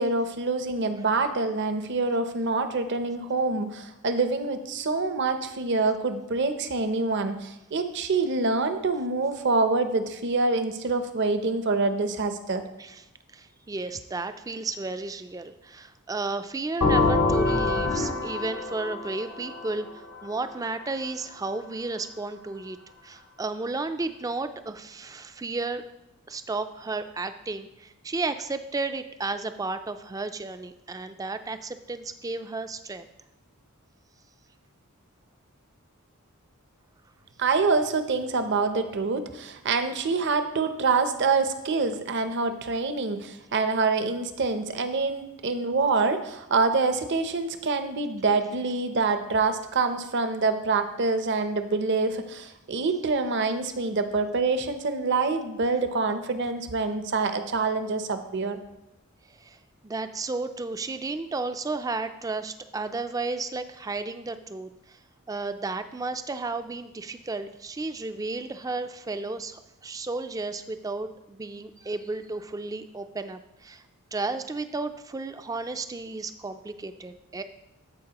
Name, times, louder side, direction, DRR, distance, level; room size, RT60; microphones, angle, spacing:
voice 1, 0.0-12.7 37.4-58.6, right 3 dB, 50° right, 9 dB, 0.6 m, -26 dB
voice 2, 13.3-22.8 23.0-25.8 26.3-33.1 59.4-59.6 59.8-65.0 65.3-73.8 74.1-77.4, right 3 dB, 15° right, 10 dB, 0.3 m, -33 dB
sound 1, 16.8-20.5, left 3 dB, 80° left, 0.8 m, -25 dB
14.0 x 4.7 x 2.9 m, 0.94 s
head